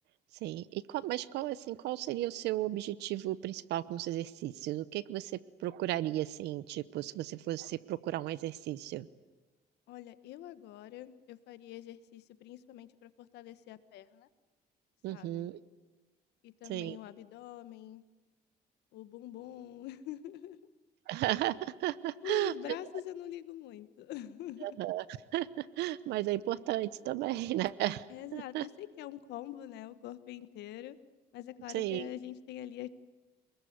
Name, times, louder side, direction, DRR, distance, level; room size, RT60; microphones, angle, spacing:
voice 1, 0.4-9.1 15.0-15.6 16.7-17.0 21.1-22.5 24.6-25.0 25.3-28.0 28.3-28.7 31.7-32.1, right 15 dB, 80° right, 18 dB, 0.9 m, -34 dB
voice 2, 9.9-14.3 15.1-15.5 16.4-18.0 18.9-20.6 22.2-24.8 28.1-31.0 31.3-32.9, left 12 dB, 80° left, 14 dB, 1.4 m, -45 dB
27.5 x 20.5 x 9.5 m, 1.2 s
cardioid pair, 110°, 17 cm